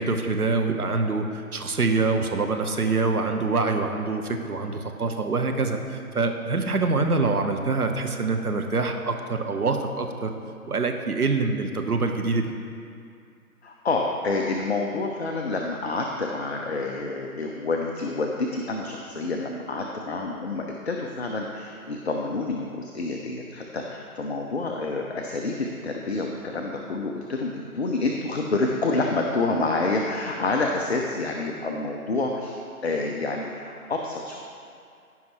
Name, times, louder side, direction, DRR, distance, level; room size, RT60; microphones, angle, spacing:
voice 1, 0.0-10.3 10.7-12.5, right 3 dB, 85° right, 5 dB, 1.1 m, -25 dB
voice 2, 13.6-34.4, left 3 dB, 45° left, 1 dB, 0.6 m, -28 dB
15.0 x 5.6 x 3.1 m, 2.4 s
figure-of-eight pair, 155°, 44 cm